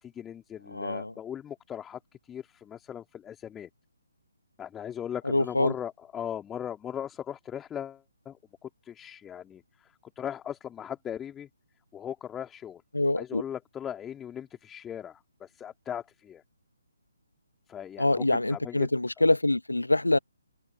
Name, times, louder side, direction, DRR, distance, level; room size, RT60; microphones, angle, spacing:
voice 1, 0.0-3.7 4.6-11.5 11.9-12.8 13.2-16.4 17.7-18.9, left 9 dB, 10° left, 3.0 m, -39 dB
voice 2, 0.7-1.1 5.2-5.7 12.9-13.4 18.0-20.2, left 2 dB, 75° left, 1.0 m, -25 dB
open air
figure-of-eight pair, 140°, 0 cm